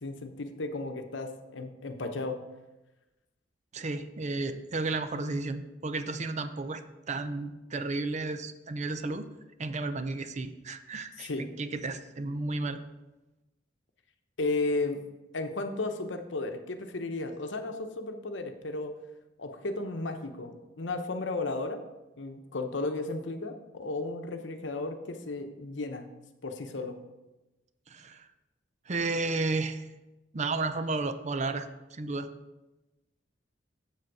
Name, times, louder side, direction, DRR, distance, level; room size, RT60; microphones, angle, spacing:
voice 1, 0.0-2.4 11.2-11.4 14.4-15.0 15.3-18.9 19.4-21.8 22.2-26.1 26.4-27.0, left 2 dB, 75° left, 6 dB, 0.9 m, -34 dB
voice 2, 3.7-6.8 7.1-9.3 9.6-12.8 27.9-28.3 28.9-29.9 30.3-32.3, right 3 dB, 40° right, 10 dB, 0.5 m, -33 dB
7.7 x 7.3 x 4.7 m, 1.0 s
head